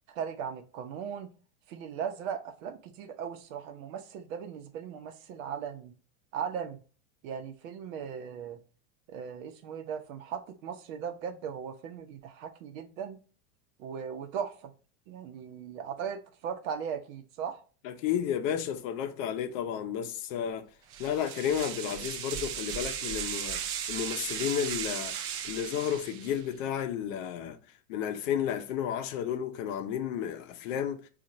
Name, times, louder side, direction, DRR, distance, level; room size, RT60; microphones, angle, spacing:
voice 1, 0.1-1.3 1.7-6.0 6.3-6.8 7.2-8.6 9.1-13.2 13.8-14.7 15.1-17.6, right 7 dB, 65° right, 0.8 m, -38 dB
voice 2, 17.8-20.7 21.0-27.6 27.9-31.1, left 9 dB, 60° left, 0.7 m, -32 dB
sound 1, 20.9-26.5, right 9 dB, 35° right, 0.4 m, -36 dB
4.3 x 2.5 x 3.8 m
supercardioid pair, 145°, 45 cm